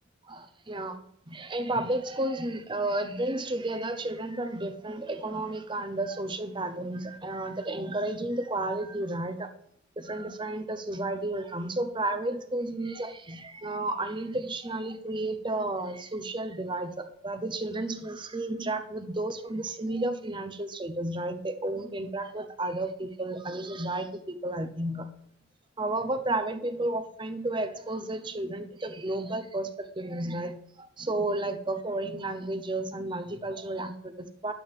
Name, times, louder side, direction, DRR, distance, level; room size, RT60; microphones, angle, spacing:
voice 1, 0.3-1.0 1.3-9.5 10.0-25.1 25.8-34.5, right 2 dB, 25° right, 10 dB, 0.7 m, -32 dB
11.0 x 8.4 x 3.6 m, 0.70 s
head